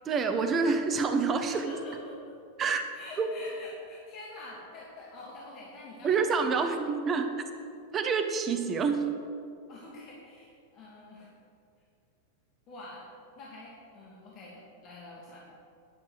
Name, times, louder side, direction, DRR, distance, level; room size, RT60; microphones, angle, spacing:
voice 1, 0.1-1.8 2.6-2.8 3.2-3.3 6.0-7.3 7.9-9.0, right 5 dB, 25° right, 6 dB, 1.2 m, -27 dB
voice 2, 1.5-2.1 2.9-6.6 9.7-11.3 12.7-13.0 13.4-15.4, left 2 dB, 35° left, -5 dB, 2.4 m, -46 dB
10.5 x 8.7 x 7.9 m, 2.4 s
figure-of-eight pair, 90°, 0 cm